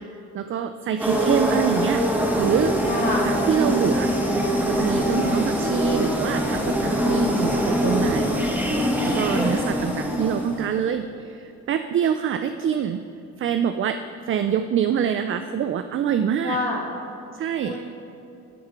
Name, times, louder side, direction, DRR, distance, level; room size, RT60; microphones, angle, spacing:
voice 1, 0.3-2.1 2.4-2.7 3.2-4.1 4.7-8.5 9.1-13.0 13.4-16.6 17.3-17.8, right 8 dB, 45° right, 9 dB, 0.4 m, -25 dB
sound 1, 1.0-10.8, equal, 5° right, 1.3 m, -23 dB
voice 2, 2.9-3.3 9.3-9.8 16.4-16.8 17.6-17.9, left 2 dB, 30° left, -5 dB, 1.5 m, -28 dB
12.5 x 4.4 x 5.9 m, 2.8 s
cardioid pair, 90°, 30 cm